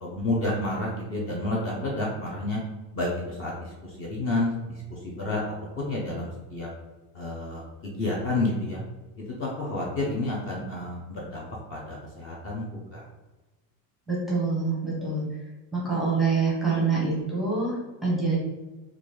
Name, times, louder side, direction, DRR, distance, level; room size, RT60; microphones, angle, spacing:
voice 1, 0.0-2.6 2.9-3.1 3.4-3.5 4.0-4.5 5.0-5.4 5.8-6.7 7.1-7.6 8.0-8.8 9.4-12.6 12.9-13.0, left 2 dB, 35° left, -3 dB, 0.6 m, -29 dB
voice 2, 14.1-15.3 15.7-18.4, right 4 dB, ahead, -7 dB, 0.7 m, -26 dB
3.7 x 2.5 x 3.1 m, 1.1 s
cardioid pair, 170°, 40 cm